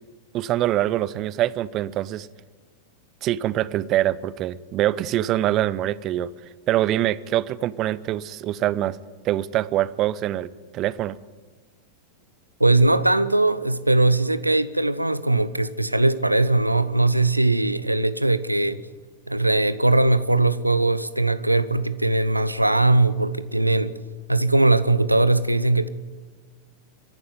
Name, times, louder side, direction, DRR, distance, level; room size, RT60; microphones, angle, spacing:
voice 1, 0.3-2.3 3.2-6.3 6.7-9.0 9.2-11.2, right 13 dB, 35° right, 0.7 m, -24 dB
voice 2, 12.6-18.8 19.3-24.0 24.3-25.9, right 2 dB, 85° right, 0.9 m, -20 dB
25.0 x 11.5 x 9.6 m
figure-of-eight pair, 90°, 0 cm